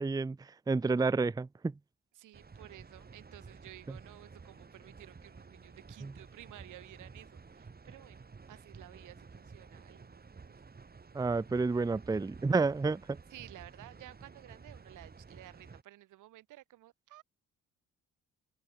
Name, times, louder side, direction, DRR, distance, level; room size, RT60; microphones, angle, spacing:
voice 1, 0.0-1.8 3.9-4.0 6.0-6.1 11.1-13.2, right 4 dB, 15° right, 0.6 m, -30 dB
voice 2, 2.2-10.7 13.3-17.2, right 15 dB, 85° right, 4.5 m, -54 dB
sound 1, 2.3-15.8, right 4 dB, 30° right, 5.4 m, -53 dB
open air
cardioid pair, 90°, 30 cm